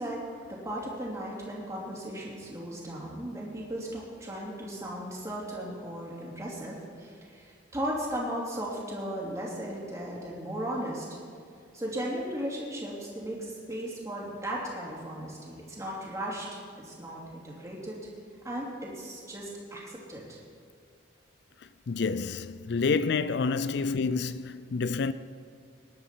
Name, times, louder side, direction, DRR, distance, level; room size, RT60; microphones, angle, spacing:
voice 1, 0.0-11.1 11.7-18.0 18.4-20.4, right 1 dB, 15° right, 2.8 m, -36 dB
voice 2, 21.9-25.1, left 4 dB, 55° left, 0.4 m, -28 dB
20.0 x 10.5 x 4.5 m
head